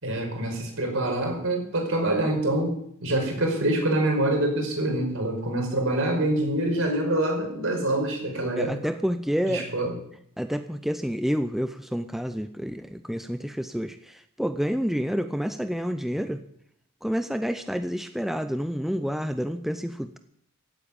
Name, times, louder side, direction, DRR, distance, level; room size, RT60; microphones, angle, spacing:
voice 1, 0.0-2.7 3.0-8.8 9.4-9.9, right 1 dB, 65° right, 2 dB, 5.2 m, -25 dB
voice 2, 8.6-9.7 10.4-16.4 17.0-20.2, equal, ahead, 9 dB, 0.6 m, -29 dB
16.0 x 8.7 x 8.6 m, 0.70 s
head